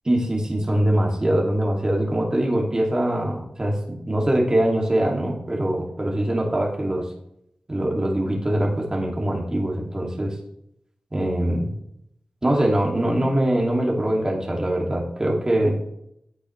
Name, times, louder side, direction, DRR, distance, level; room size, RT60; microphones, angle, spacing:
voice 1, 0.0-7.1 7.7-10.3 11.1-11.7 12.4-15.8, right 1 dB, 25° right, -1 dB, 2.6 m, -23 dB
15.5 x 8.3 x 3.3 m, 0.77 s
wide cardioid pair, 80°, 3 cm